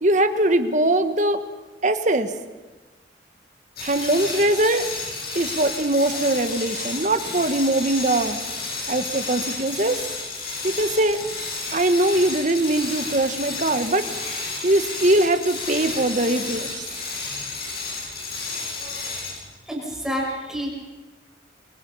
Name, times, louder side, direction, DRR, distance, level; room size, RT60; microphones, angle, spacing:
voice 1, 0.0-1.4 1.8-2.3 3.8-4.9 5.3-8.4 8.9-10.0 10.6-11.2 11.7-14.1 14.6-16.8, right 1 dB, 40° right, 8 dB, 1.5 m, -21 dB
sound 1, 3.8-19.5, left 3 dB, 55° left, 7.9 m, -31 dB
voice 2, 19.7-20.7, equal, 5° right, -2 dB, 6.5 m, -28 dB
28.0 x 25.5 x 5.7 m, 1.2 s
head